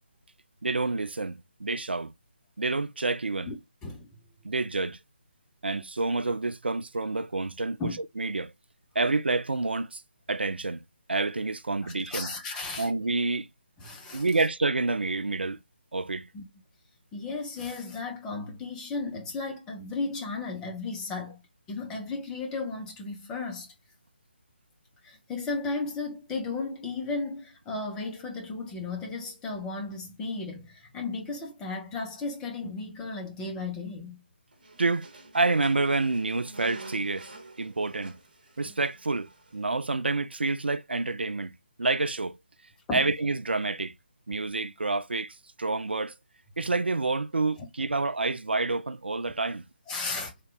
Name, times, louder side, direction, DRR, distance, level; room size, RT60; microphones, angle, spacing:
voice 1, 0.6-2.1 2.6-3.5 4.4-5.0 5.6-8.5 9.0-10.0 10.3-10.8 11.1-12.3 12.8-13.5 14.1-15.6 15.9-16.3 34.8-35.1 35.3-37.3 37.6-38.2 38.6-42.4 42.9-43.9 44.3-46.1 46.6-49.7, right 3 dB, 75° right, 0.4 m, -28 dB
voice 2, 11.8-12.9 13.8-14.2 16.3-16.4 17.1-21.4 21.7-23.7 25.0-34.2 42.9-43.1 49.9-50.3, left 3 dB, 10° left, 0.7 m, -34 dB
sound 1, 34.5-39.6, right 2 dB, 55° right, 1.3 m, -49 dB
3.7 x 2.8 x 3.3 m
figure-of-eight pair, 150°, 6 cm